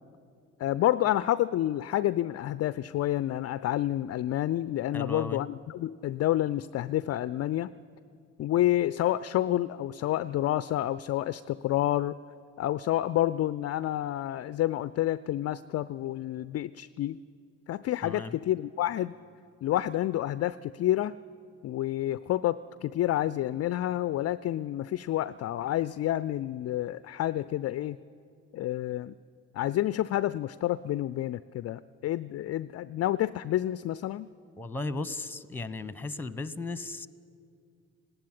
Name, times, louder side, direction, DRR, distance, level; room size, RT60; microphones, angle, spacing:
voice 1, 0.6-7.7 8.4-12.1 12.6-17.2 17.7-19.2 19.6-21.1 21.6-28.0 28.5-29.1 29.5-34.3, left 13 dB, 35° left, 16 dB, 0.4 m, -29 dB
voice 2, 4.9-5.4 18.0-18.4 34.6-37.1, left 3 dB, 5° left, 16 dB, 0.9 m, -36 dB
19.0 x 16.5 x 9.9 m, 2.3 s
figure-of-eight pair, 40°, 45 cm